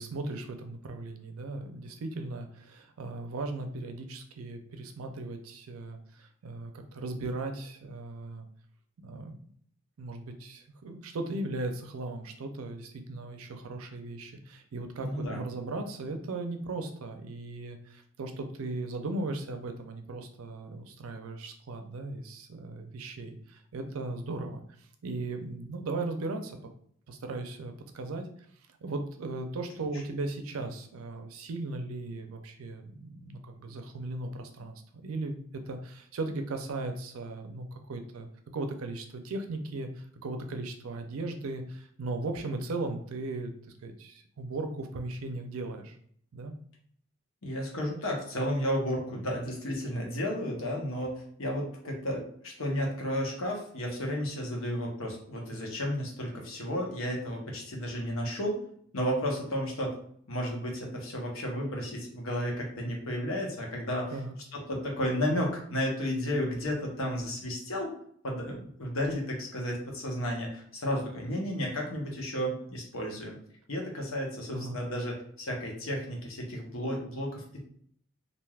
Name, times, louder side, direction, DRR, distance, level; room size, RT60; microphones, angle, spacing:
voice 1, 0.0-8.5 9.0-9.4 10.0-24.6 25.0-26.6 27.1-28.3 28.8-35.4 35.7-38.3 38.5-43.5 43.8-46.0 46.3-46.5 64.1-64.4 74.5-74.8, right 2 dB, 85° right, 6 dB, 0.4 m, -37 dB
voice 2, 15.0-15.4 47.4-58.6 58.9-59.9 60.3-64.2 64.5-67.9 68.2-73.4 73.7-77.6, equal, 80° left, -1 dB, 0.9 m, -33 dB
3.3 x 2.5 x 2.3 m, 0.62 s
head